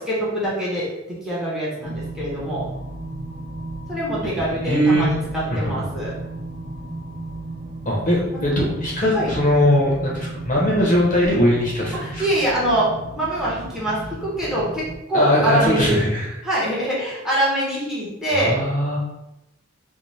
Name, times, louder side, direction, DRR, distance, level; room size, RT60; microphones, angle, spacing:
voice 1, 0.0-2.7 3.9-6.1 8.3-8.6 9.1-9.3 12.0-12.9 13.2-16.0 16.4-18.6, right 1 dB, 5° right, -7 dB, 0.7 m, -24 dB
sound 1, 1.8-15.0, right 2 dB, 50° right, 0.5 m, -34 dB
voice 2, 4.6-5.1 5.5-5.7 7.9-12.2 15.1-16.4 18.3-19.0, equal, 40° left, -3 dB, 0.7 m, -20 dB
2.6 x 2.0 x 3.2 m, 0.91 s
head